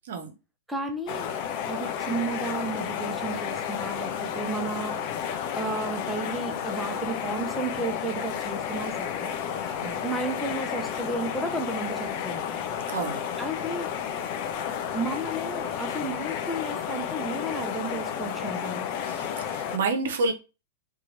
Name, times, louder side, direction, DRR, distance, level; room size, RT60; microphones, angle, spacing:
voice 1, 0.7-1.3 1.7-5.0 5.6-9.4 10.0-12.6 13.4-13.9 14.9-18.9, right 2 dB, 5° right, 3 dB, 0.6 m, -33 dB
sound 1, 1.1-19.8, left 8 dB, 40° left, 0.5 m, -32 dB
voice 2, 12.9-13.2 19.1-20.3, right 3 dB, 55° right, 6 dB, 0.8 m, -29 dB
2.9 x 2.3 x 4.1 m, 0.29 s
figure-of-eight pair, 100°, 0 cm